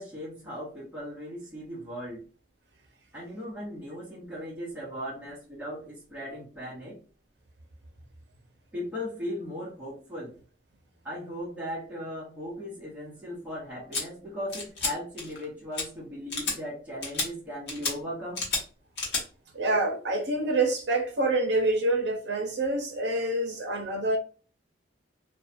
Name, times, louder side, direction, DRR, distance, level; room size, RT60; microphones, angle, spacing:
voice 1, 0.0-2.2 3.1-7.0 8.7-10.4 11.0-18.4, equal, 10° right, 0.8 m, -38 dB
sound 1, 13.9-14.0 14.5-14.9 15.2-15.5 15.7-15.8 16.3-16.6 17.0-17.3 17.7-17.9 18.4-18.6 19.0-19.2, left 3 dB, 70° left, 1.0 m, -30 dB
voice 2, 19.5-24.2, right 2 dB, 65° right, 0.7 m, -26 dB
2.6 x 2.2 x 2.5 m
head